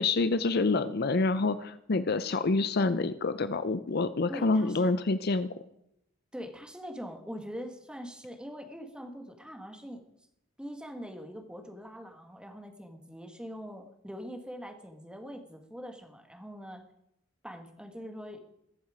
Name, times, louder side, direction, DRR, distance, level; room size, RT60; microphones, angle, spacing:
voice 1, 0.0-5.5, left 3 dB, 55° left, 13 dB, 0.6 m, -27 dB
voice 2, 4.3-4.9 6.3-10.0 10.6-16.8 17.4-18.4, equal, 5° right, 4 dB, 1.7 m, -43 dB
21.5 x 7.4 x 5.0 m, 0.79 s
head